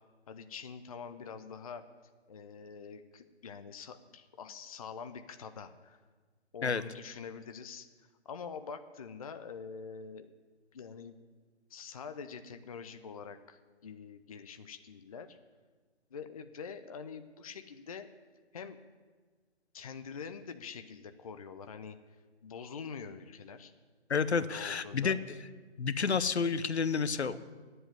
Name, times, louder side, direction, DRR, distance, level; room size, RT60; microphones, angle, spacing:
voice 1, 0.3-1.8 2.3-6.0 6.5-7.9 8.3-10.3 10.7-11.2 11.7-15.4 16.1-18.1 18.5-18.8 19.7-22.0 22.4-23.7 24.4-25.2, left 6 dB, 35° left, 9 dB, 0.5 m, -45 dB
voice 2, 24.1-25.2 25.8-27.4, left 5 dB, 70° left, 14 dB, 0.8 m, -30 dB
9.8 x 7.8 x 9.5 m, 1.4 s
figure-of-eight pair, 140°, 34 cm